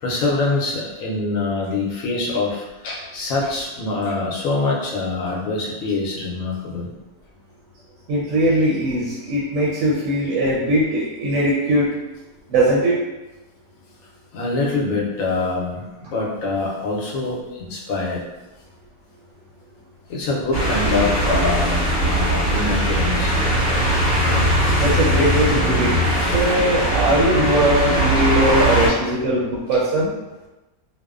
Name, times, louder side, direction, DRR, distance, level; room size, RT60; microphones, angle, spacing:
voice 1, 0.0-6.9 14.3-17.4 17.7-18.2 20.1-23.3 28.8-28.9, left 3 dB, 70° left, -3 dB, 1.0 m, -24 dB
voice 2, 8.1-12.0 12.5-13.0 24.8-30.1, right 1 dB, 70° right, -5 dB, 0.8 m, -20 dB
sound 1, 20.5-28.9, equal, 20° left, 0.9 m, -20 dB
2.9 x 2.0 x 2.3 m, 1.1 s
omnidirectional pair, 1.6 m